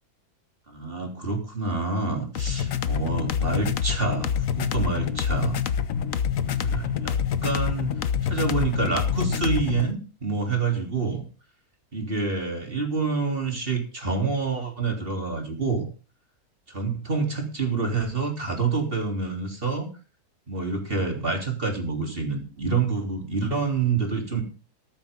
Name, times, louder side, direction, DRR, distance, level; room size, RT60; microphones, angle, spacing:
voice 1, 0.7-5.6 6.5-7.2 7.4-11.2 11.9-15.9 16.7-19.9 20.5-24.4, right 4 dB, 35° right, 3 dB, 3.8 m, -27 dB
sound 1, 2.4-9.9, left 8 dB, 60° left, 1.3 m, -26 dB
14.0 x 13.5 x 3.8 m, 0.34 s
omnidirectional pair, 1.6 m